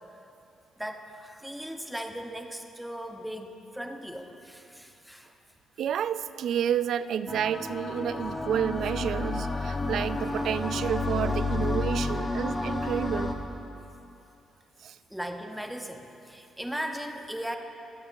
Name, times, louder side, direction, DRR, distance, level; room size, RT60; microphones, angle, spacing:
voice 1, 0.8-5.3 15.1-17.6, equal, 5° right, 4 dB, 0.8 m, -38 dB
voice 2, 5.8-13.4 14.8-15.0, right 9 dB, 70° right, 14 dB, 0.3 m, -30 dB
sound 1, 7.3-13.3, left 2 dB, 25° left, 0.9 m, -30 dB
21.0 x 7.9 x 2.6 m, 2.8 s
cardioid pair, 90°, 0 cm